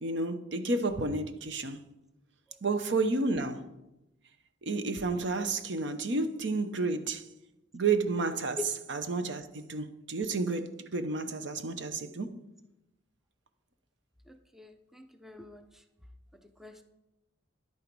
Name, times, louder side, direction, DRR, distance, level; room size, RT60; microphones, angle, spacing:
voice 1, 0.0-1.8 2.6-3.6 4.6-7.2 7.7-8.6 8.9-12.4, right 3 dB, 65° right, 0.8 m, -31 dB
voice 2, 14.3-15.6 16.6-16.8, left 4 dB, ahead, 0.5 m, -43 dB
10.5 x 9.1 x 4.6 m
head